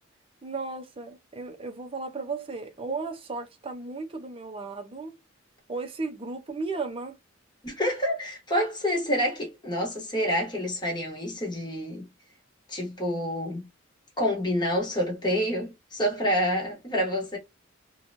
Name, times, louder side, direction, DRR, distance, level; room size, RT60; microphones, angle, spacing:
voice 1, 0.4-5.2 5.7-7.2, right 3 dB, 30° right, 0.6 m, -35 dB
voice 2, 7.6-12.1 12.7-13.7 14.2-17.4, equal, 20° left, 1.2 m, -28 dB
3.0 x 2.2 x 2.6 m
head